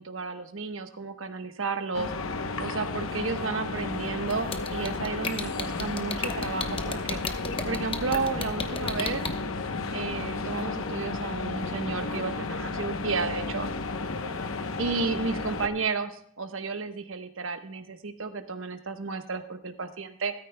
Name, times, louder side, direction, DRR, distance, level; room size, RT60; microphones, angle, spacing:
voice 1, 0.0-2.1 2.6-7.2 7.6-9.2 9.9-13.7 14.8-20.3, right 4 dB, 75° right, 8 dB, 1.1 m, -32 dB
sound 1, 1.9-15.7, left 3 dB, 85° left, 0.9 m, -33 dB
sound 2, 4.3-9.3, left 4 dB, 25° left, 0.9 m, -32 dB
14.0 x 13.0 x 2.2 m, 0.66 s
head